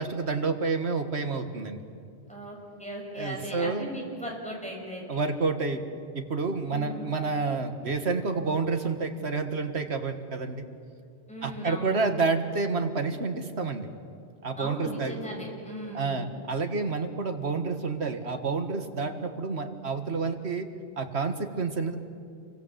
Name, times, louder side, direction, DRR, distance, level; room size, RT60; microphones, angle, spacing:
voice 1, 0.0-1.8 3.1-3.9 5.1-5.8 6.1-10.7 11.4-13.9 14.4-15.2 15.9-20.7 21.0-22.0, right 4 dB, 75° right, 7 dB, 1.9 m, -29 dB
voice 2, 2.3-5.2 6.7-7.2 11.3-12.2 14.6-16.2, equal, 5° left, -1 dB, 6.0 m, -38 dB
29.0 x 23.5 x 8.1 m, 2.3 s
omnidirectional pair, 1.1 m